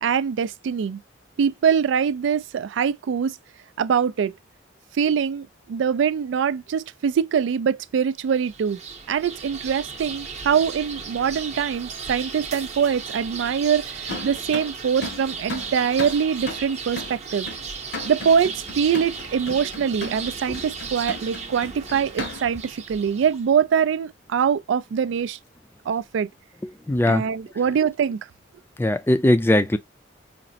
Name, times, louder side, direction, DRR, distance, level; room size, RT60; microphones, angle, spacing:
voice 1, 0.0-1.0 1.4-3.4 3.8-4.3 5.0-8.8 9.1-17.5 18.0-25.4 25.9-26.3 27.1-28.2, right 7 dB, 70° right, 0.3 m, -23 dB
sound 1, 8.3-23.4, right 5 dB, 35° right, 0.7 m, -36 dB
sound 2, 14.1-22.7, left 2 dB, 60° left, 0.8 m, -36 dB
voice 2, 26.9-27.3 28.8-29.8, left 1 dB, 10° left, 0.3 m, -19 dB
4.9 x 2.0 x 2.6 m
head